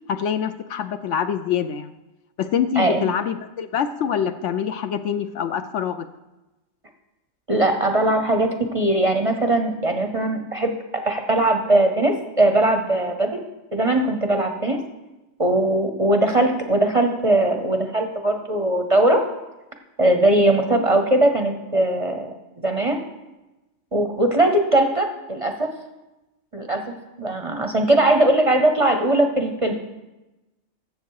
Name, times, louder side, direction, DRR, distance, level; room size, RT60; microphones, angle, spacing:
voice 1, 0.1-1.9 2.4-6.1, left 8 dB, 70° left, 9 dB, 0.8 m, -25 dB
voice 2, 2.8-3.1 7.5-10.7 11.0-13.3 13.7-14.8 15.4-19.2 20.0-22.3 22.6-23.0 23.9-25.7 26.5-26.8 27.2-29.7, right 1 dB, 30° right, 4 dB, 0.7 m, -20 dB
14.5 x 6.8 x 4.7 m, 1.0 s
omnidirectional pair, 1.4 m